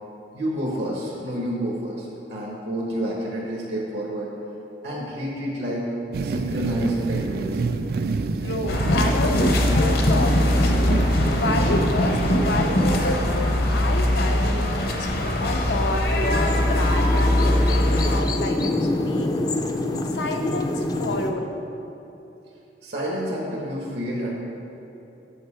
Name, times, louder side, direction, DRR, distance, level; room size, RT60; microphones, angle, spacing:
voice 1, 0.3-4.3 4.8-5.9 6.2-7.6 22.8-24.3, equal, 75° right, -4 dB, 1.2 m, -29 dB
sound 1, 6.1-14.6, right 4 dB, 55° right, 0.3 m, -29 dB
voice 2, 8.2-11.0 11.3-19.3 20.1-21.5, left 2 dB, 90° left, 4 dB, 0.7 m, -29 dB
sound 2, 8.7-18.2, left 1 dB, 55° left, 0.8 m, -21 dB
sound 3, 16.2-21.3, left 2 dB, 20° left, 0.4 m, -26 dB
7.9 x 5.6 x 4.9 m, 2.9 s
head